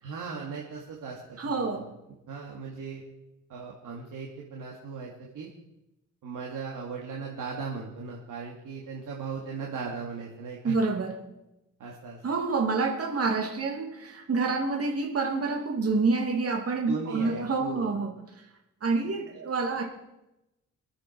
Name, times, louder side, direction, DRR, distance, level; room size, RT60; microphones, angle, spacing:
voice 1, 0.0-1.8 2.3-3.0 3.5-5.5 6.2-10.8 11.8-12.2 16.9-17.9 19.0-19.1, right 5 dB, 75° right, -2 dB, 2.6 m, -38 dB
voice 2, 1.4-1.9 10.6-11.2 12.2-18.1 18.8-19.8, right 4 dB, 45° right, 1 dB, 2.6 m, -27 dB
25.0 x 8.6 x 4.7 m, 0.91 s
cardioid pair, 80°, 32 cm